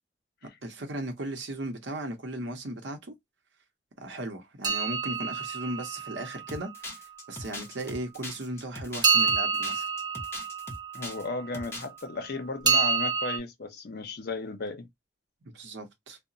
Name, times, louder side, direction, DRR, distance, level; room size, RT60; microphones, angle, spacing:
voice 1, 0.6-3.1 4.0-7.0 7.3-9.9 15.5-16.2, right 1 dB, 70° right, 0.7 m, -36 dB
sound 1, 4.6-6.7 9.0-11.4 12.7-13.4, right 5 dB, 25° right, 0.6 m, -27 dB
sound 2, 6.5-11.2 11.5-12.0, left 1 dB, 15° left, 0.8 m, -40 dB
voice 2, 10.9-14.9, left 3 dB, 55° left, 0.6 m, -35 dB
2.8 x 2.1 x 2.5 m
head